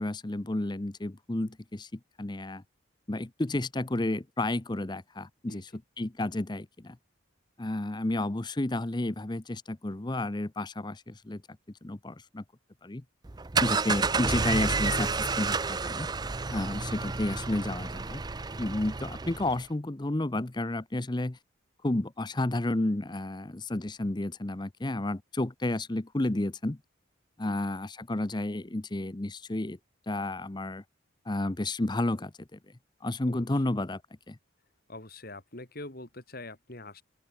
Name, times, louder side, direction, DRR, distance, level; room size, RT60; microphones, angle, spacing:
voice 1, 0.0-2.6 3.1-7.0 7.6-11.4 11.8-12.4 12.8-13.0 13.6-16.1 16.5-18.2 18.6-21.4 21.8-26.8 27.4-29.8 30.1-30.8 31.3-32.6 33.0-34.0 34.3-34.4, left 1 dB, 20° left, 0.7 m, -31 dB
sound 1, 13.2-19.6, right 4 dB, 20° right, 0.5 m, -30 dB
voice 2, 34.9-37.0, left 2 dB, 45° left, 3.2 m, -44 dB
open air
head